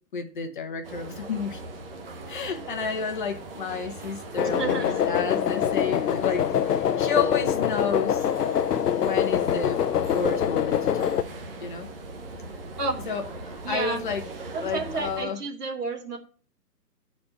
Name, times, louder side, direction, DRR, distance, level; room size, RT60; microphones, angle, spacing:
voice 1, 0.1-1.6 2.3-8.3 9.0-9.8 10.1-11.1 11.6-11.9 13.1-14.2 14.6-15.4, left 5 dB, 30° left, 1.0 m, -31 dB
sound 1, 0.8-15.2, right 2 dB, 35° right, 1.0 m, -40 dB
sound 2, 4.4-11.2, left 9 dB, 70° left, 0.7 m, -24 dB
voice 2, 4.5-5.0 12.8-13.0 13.6-14.0 14.5-16.2, right 3 dB, 70° right, 2.4 m, -31 dB
8.5 x 4.3 x 7.1 m
hypercardioid pair, 165°, 49 cm